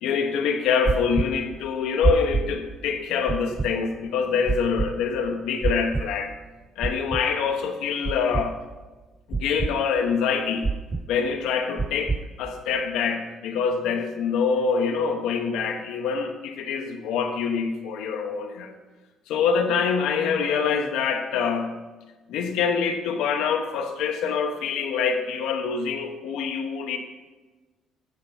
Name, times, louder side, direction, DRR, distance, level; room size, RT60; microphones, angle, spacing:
voice 1, 0.0-6.3 6.8-8.6 9.3-10.7 11.1-18.7 19.3-21.7 22.3-27.0, left 6 dB, 75° left, 4 dB, 0.8 m, -25 dB
sound 1, 0.9-1.3 2.0-2.4 3.3-3.7 4.5-4.9 5.6-6.0 6.8-7.2 8.0-8.4 9.3-9.7 10.6-11.0 11.8-12.2, right 4 dB, 25° right, 0.4 m, -24 dB
10.5 x 4.4 x 4.2 m, 1.2 s
supercardioid pair, 60°, 0 cm